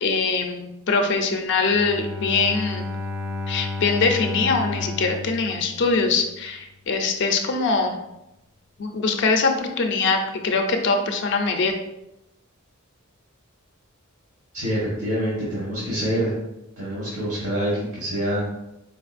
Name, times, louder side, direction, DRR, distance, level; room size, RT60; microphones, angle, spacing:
voice 1, 0.0-2.9 3.5-8.0 8.8-11.7, left 4 dB, 60° left, 4 dB, 0.5 m, -23 dB
Bowed string instrument, 1.7-6.4, left 3 dB, 10° right, 0.4 m, -32 dB
voice 2, 14.5-16.4 16.8-18.5, equal, 65° right, -6 dB, 1.2 m, -26 dB
4.5 x 2.9 x 2.5 m, 0.89 s
head